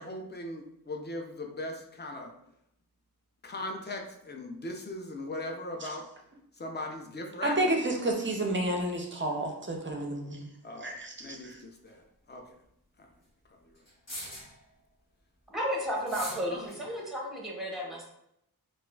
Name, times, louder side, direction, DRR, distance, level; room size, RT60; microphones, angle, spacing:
voice 1, 0.0-2.3 3.4-6.0 6.6-7.7 10.6-12.4 13.0-13.1 13.6-13.7 16.5-16.7, left 1 dB, 25° left, 3 dB, 0.4 m, -39 dB
voice 2, 7.4-10.5 10.8-11.6, right 1 dB, 30° right, 2 dB, 0.4 m, -30 dB
sound 1, 11.9-12.0 13.9-14.6 16.0-16.5, equal, 45° left, 1.2 m, -40 dB
voice 3, 15.5-18.1, equal, ahead, -3 dB, 0.9 m, -33 dB
4.0 x 2.5 x 2.3 m, 0.77 s
wide cardioid pair, 115°, 39 cm